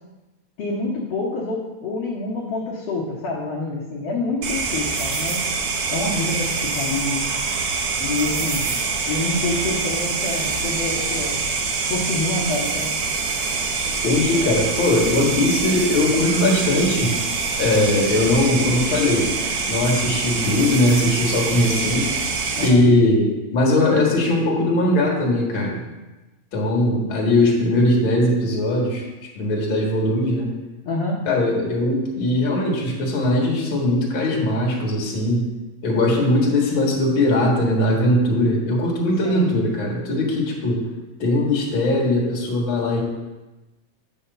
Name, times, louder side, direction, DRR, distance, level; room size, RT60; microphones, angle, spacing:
voice 1, 0.6-5.4 5.9-7.3 8.0-8.7 9.1-11.4 11.9-12.9 22.6-22.8 30.9-31.2 39.2-39.5, left 2 dB, 60° left, -6 dB, 2.0 m, -27 dB
sound 1, 4.4-22.7, right 4 dB, 90° right, 2.6 m, -25 dB
voice 2, 14.0-17.1 17.6-19.3 19.7-22.1 22.6-25.8 26.5-29.1 29.4-30.5 31.3-35.5 35.8-40.8 41.2-43.0, left 1 dB, 45° left, -2 dB, 2.2 m, -20 dB
8.8 x 3.5 x 6.7 m, 1.1 s
omnidirectional pair, 3.4 m